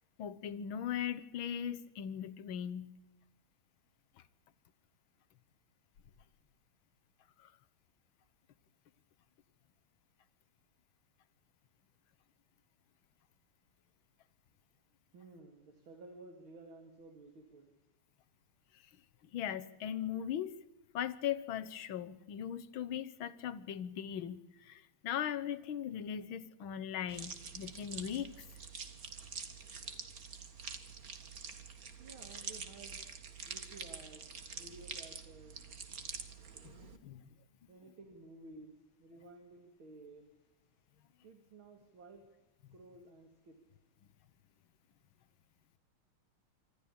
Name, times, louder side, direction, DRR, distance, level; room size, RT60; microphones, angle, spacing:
voice 1, 0.2-2.9 7.4-7.5 19.3-20.5 20.9-28.3 36.6-37.2, left 9 dB, 70° left, 13 dB, 1.9 m, -39 dB
voice 2, 15.1-17.8 31.7-33.0 33.5-35.6 37.7-38.7 39.0-40.3 41.2-42.2 42.7-43.6, right 2 dB, 70° right, 6 dB, 3.1 m, -54 dB
sound 1, 27.1-37.0, right 5 dB, 45° right, 2.2 m, -46 dB
26.0 x 14.0 x 8.6 m, 0.99 s
omnidirectional pair, 2.3 m